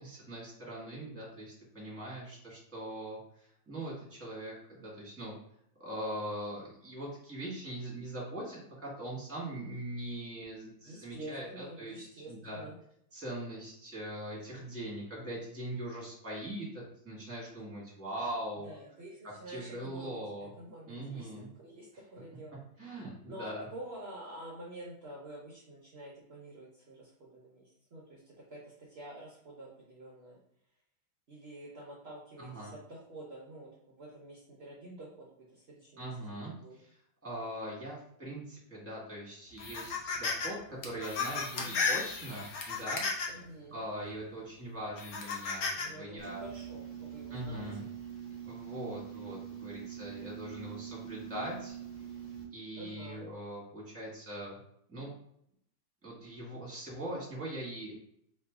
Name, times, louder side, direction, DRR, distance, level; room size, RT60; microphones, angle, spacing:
voice 1, 0.0-3.2 3.7-5.3 5.8-12.7 13.1-18.7 19.2-20.5 20.9-21.5 22.8-23.7 32.4-32.7 36.0-36.9 37.2-43.4 43.7-46.4 47.3-47.8 48.5-51.8 52.5-54.6 54.9-55.1 56.0-57.9, right 1 dB, 10° right, -5 dB, 1.1 m, -41 dB
voice 2, 10.8-12.8 18.6-20.2 20.6-21.3 21.6-22.6 23.3-30.4 31.3-35.3 35.5-36.1 36.6-36.8 41.6-41.9 43.3-43.8 45.7-47.6 52.8-53.2, right 1 dB, 60° right, -4 dB, 0.6 m, -48 dB
sound 1, 39.6-40.5 40.8-43.4 44.0-44.2 45.0-45.9, left 4 dB, 65° left, 1.0 m, -34 dB
sound 2, 46.2-52.4, right 9 dB, 45° left, 1.4 m, -44 dB
3.1 x 3.1 x 3.5 m, 0.73 s
omnidirectional pair, 2.1 m